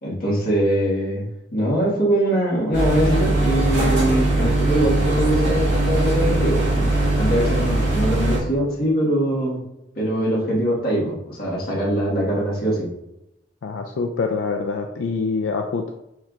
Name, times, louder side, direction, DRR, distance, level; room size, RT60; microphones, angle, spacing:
voice 1, 0.0-6.9 7.2-9.6 9.9-12.9, right 1 dB, 55° left, -5 dB, 1.6 m, -22 dB
sound 1, 2.7-8.4, right 2 dB, 70° right, 1.4 m, -20 dB
voice 2, 13.6-15.9, left 4 dB, 85° left, 4 dB, 0.4 m, -25 dB
4.6 x 4.4 x 2.4 m, 0.87 s
head